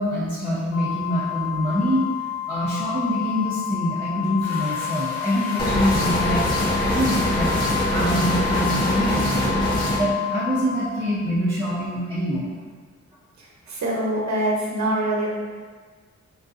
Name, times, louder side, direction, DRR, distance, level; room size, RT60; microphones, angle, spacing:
voice 1, 0.0-2.0 2.5-6.5 6.9-7.5 7.9-9.6 10.0-12.5, equal, 15° right, -9 dB, 0.8 m, -25 dB
Organ, 0.7-11.5, left 13 dB, 55° left, 0.5 m, -30 dB
sound 1, 4.4-9.5, left 1 dB, 75° left, 1.5 m, -36 dB
sound 2, 5.6-10.0, equal, 15° left, 1.0 m, -23 dB
voice 2, 13.7-15.3, right 1 dB, 70° right, -3 dB, 0.9 m, -24 dB
3.8 x 2.5 x 3.7 m, 1.5 s
wide cardioid pair, 125°, 30 cm